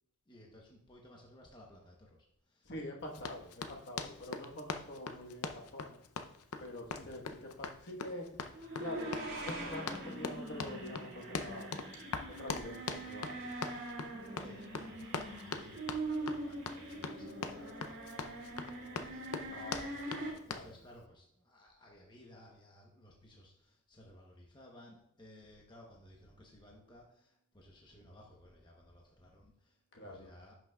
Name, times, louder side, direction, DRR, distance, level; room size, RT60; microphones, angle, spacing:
voice 1, 0.3-2.7 6.8-7.2 14.2-30.5, left 1 dB, 20° left, -1 dB, 0.9 m, -58 dB
voice 2, 2.6-6.0 6.6-8.3 8.8-9.1 9.4-11.7 12.4-13.5 19.5-20.7 29.9-30.3, left 1 dB, 50° left, 0 dB, 1.3 m, -46 dB
Run, 3.1-20.7, left 5 dB, 85° left, 0.6 m, -42 dB
sound 1, 8.5-20.3, right 2 dB, 55° right, 2.1 m, -43 dB
10.5 x 6.0 x 2.3 m, 0.74 s
head